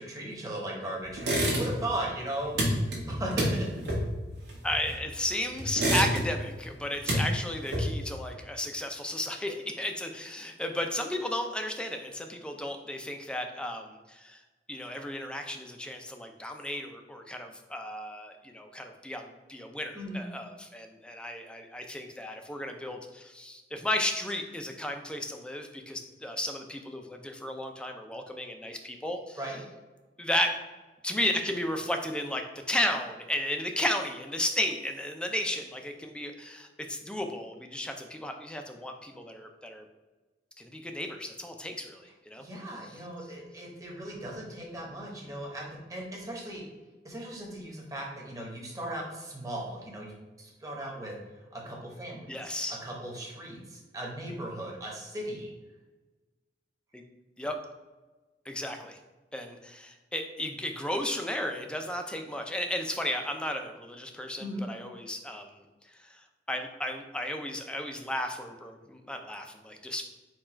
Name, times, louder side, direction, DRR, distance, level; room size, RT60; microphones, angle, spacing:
voice 1, 0.0-3.7 19.9-20.3 29.4-29.6 42.4-46.6 47.0-51.1 51.5-55.5 64.4-64.6, right 1 dB, 20° right, -2 dB, 1.0 m, -37 dB
sound 1, 1.2-5.2 5.6-6.5 6.8-8.2, equal, 70° right, 1.3 m, -28 dB
voice 2, 4.6-14.4 14.7-29.4 30.2-30.5 31.0-39.8 40.6-42.4 52.3-52.8 56.9-57.0 57.4-57.6 58.5-59.0 59.3-65.6 66.0-70.0, left 1 dB, 5° left, 4 dB, 0.4 m, -34 dB
4.4 x 2.3 x 4.3 m, 1.2 s
head